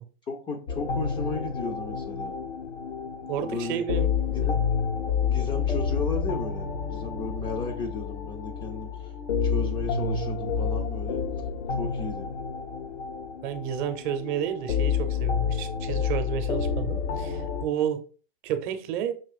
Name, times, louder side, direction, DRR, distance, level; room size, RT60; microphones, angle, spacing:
voice 1, 0.3-2.3 3.4-3.8 4.2-4.6 5.2-9.1 9.4-11.2 11.7-12.3, left 4 dB, 15° left, 0.3 m, -34 dB
sound 1, 0.7-17.7, left 6 dB, 85° left, 0.8 m, -29 dB
voice 2, 3.3-4.1 4.4-4.5 13.4-18.0 18.4-19.1, right 9 dB, 50° right, 0.7 m, -31 dB
5.5 x 2.9 x 2.4 m
hypercardioid pair, 125°, 31 cm